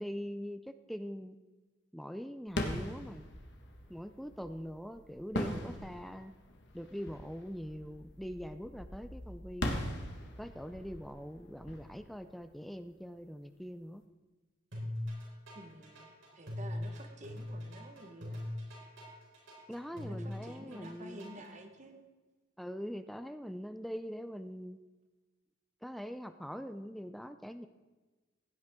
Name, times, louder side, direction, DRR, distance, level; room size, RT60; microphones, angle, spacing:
voice 1, 0.0-1.4 1.9-3.3 3.9-6.3 6.7-9.9 10.4-14.0 19.7-21.6 22.6-24.8 25.8-27.7, equal, ahead, 10 dB, 0.4 m, -43 dB
sound 1, 2.5-13.1, left 1 dB, 65° left, 1.5 m, -41 dB
sound 2, 14.7-21.5, left 1 dB, 70° right, 3.9 m, -41 dB
voice 2, 15.5-16.1 16.3-18.4 19.9-22.1, right 1 dB, 40° right, 5 dB, 1.3 m, -50 dB
16.5 x 9.1 x 3.7 m, 1.2 s
head